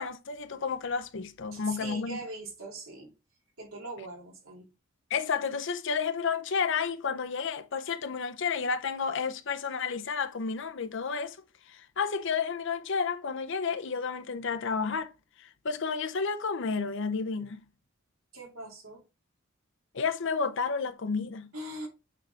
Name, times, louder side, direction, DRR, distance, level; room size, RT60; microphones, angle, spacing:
voice 1, 0.0-2.2 5.1-11.4 11.7-15.1 15.4-17.6 19.9-21.5, left 5 dB, 60° left, 0.6 m, -31 dB
voice 2, 1.5-3.1 3.6-4.7 18.3-19.0 21.5-21.9, right 2 dB, 80° right, 2.6 m, -41 dB
8.4 x 3.7 x 3.3 m
head